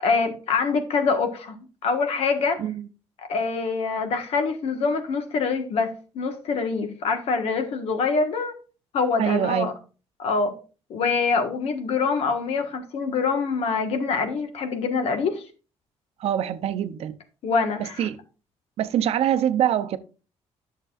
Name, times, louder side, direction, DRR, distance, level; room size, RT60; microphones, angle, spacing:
voice 1, 0.0-1.6 1.8-2.6 3.3-8.5 8.9-9.7 10.2-10.5 10.9-15.4 17.4-18.1, left 4 dB, 65° left, 1.5 m, -25 dB
voice 2, 9.2-9.7 16.2-17.2 17.8-18.2 18.8-20.0, right 10 dB, 65° right, 0.6 m, -24 dB
11.0 x 6.6 x 2.5 m
cardioid pair, 150°, 11 cm